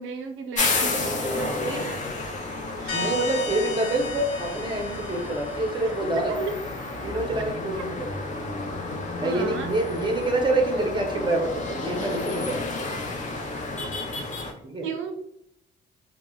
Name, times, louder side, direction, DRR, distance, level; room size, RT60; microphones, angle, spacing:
voice 1, 0.0-2.4 2.8-3.2 6.0-6.4 9.2-9.7 14.8-15.1, right 5 dB, 80° right, 5 dB, 0.5 m, -36 dB
sound 1, 0.6-14.5, left 2 dB, 40° left, 0.5 m, -31 dB
sound 2, 2.9-6.3, left 3 dB, 80° left, 0.6 m, -34 dB
voice 2, 2.9-6.5 7.0-8.1 9.2-12.7 14.6-14.9, right 2 dB, 25° right, 2 dB, 0.6 m, -26 dB
3.2 x 2.0 x 2.2 m, 0.75 s
cardioid pair, 90°, 20 cm